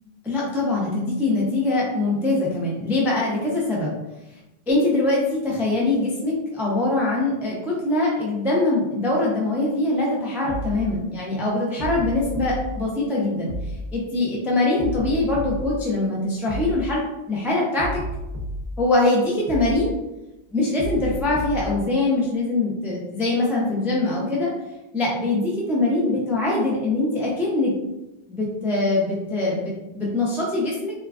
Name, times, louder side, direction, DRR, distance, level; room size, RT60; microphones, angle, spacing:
voice 1, 0.2-3.9 4.7-13.5 13.9-18.0 18.8-19.9 20.5-24.5 24.9-27.7 28.3-30.9, left 2 dB, 5° right, -4 dB, 0.3 m, -23 dB
sound 1, 10.5-10.8 11.8-12.6 13.5-13.8 14.8-15.7 16.5-16.8 17.8-18.7 19.5-19.8 20.8-21.7, right 1 dB, 50° right, 0.8 m, -31 dB
3.7 x 2.3 x 2.3 m, 0.97 s
omnidirectional pair, 1.1 m